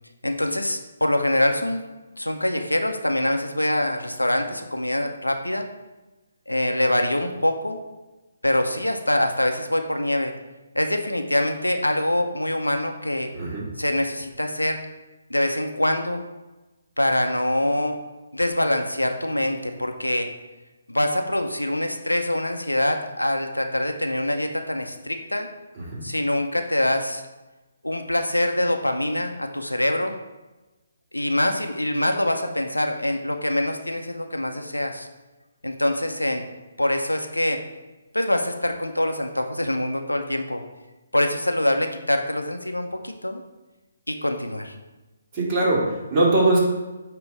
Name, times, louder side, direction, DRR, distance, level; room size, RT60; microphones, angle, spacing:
voice 1, 0.2-1.8 2.2-5.7 6.5-7.8 8.4-10.3 10.7-13.3 13.8-14.8 15.3-16.2 17.0-18.0 18.3-20.3 20.9-25.5 26.0-27.2 27.8-30.1 31.1-35.1 35.6-36.4 36.8-37.6 38.1-40.6 41.1-43.4 44.1-44.7, left 1 dB, 90° left, 5 dB, 0.7 m, -24 dB
voice 2, 13.3-13.7 25.8-26.0 45.3-46.6, right 2 dB, 25° right, -5 dB, 2.3 m, -21 dB
8.9 x 3.0 x 4.7 m, 1.1 s
figure-of-eight pair, 140°, 0 cm